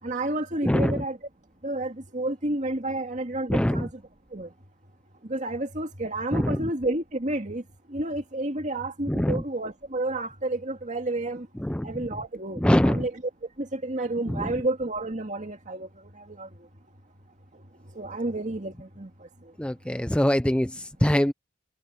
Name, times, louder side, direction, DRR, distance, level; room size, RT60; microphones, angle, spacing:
voice 1, 0.0-1.2 1.6-4.0 4.3-4.5 5.2-11.5 11.8-13.1 13.6-16.7 17.5-19.5, right 2 dB, 40° right, 2.3 m, -31 dB
voice 2, 0.6-1.0 3.5-3.9 6.3-6.6 9.1-9.4 11.6-11.9 12.6-13.0 14.3-14.5 19.6-21.3, equal, 5° left, 0.5 m, -23 dB
head